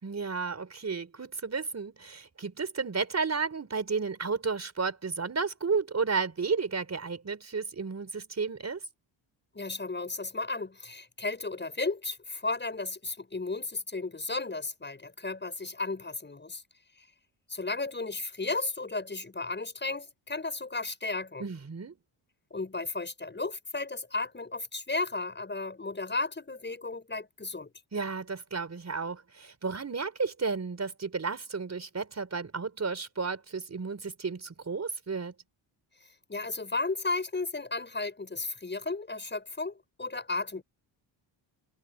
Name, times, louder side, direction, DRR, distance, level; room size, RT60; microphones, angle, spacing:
voice 1, 0.0-8.8 21.4-21.9 27.9-35.3, right 4 dB, 35° right, 5.0 m, -32 dB
voice 2, 9.5-16.6 17.0-17.1 17.5-21.4 22.5-27.7 36.3-40.6, left 3 dB, 20° left, 7.1 m, -34 dB
cardioid pair, 100°, 48 cm